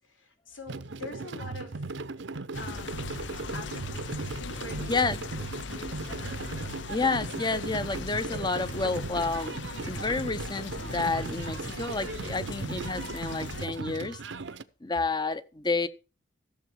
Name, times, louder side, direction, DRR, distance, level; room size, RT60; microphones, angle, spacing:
voice 1, 0.0-1.9 2.6-3.0 3.5-5.2 5.7-6.5, left 2 dB, 85° left, 3.5 m, -45 dB
sound 1, 0.7-14.6, right 3 dB, 70° right, 0.8 m, -37 dB
sound 2, 2.5-13.6, left 4 dB, 70° left, 0.7 m, -40 dB
voice 2, 6.9-9.5 9.9-14.2 14.8-15.9, left 3 dB, 20° left, 0.8 m, -30 dB
14.5 x 7.1 x 4.7 m
head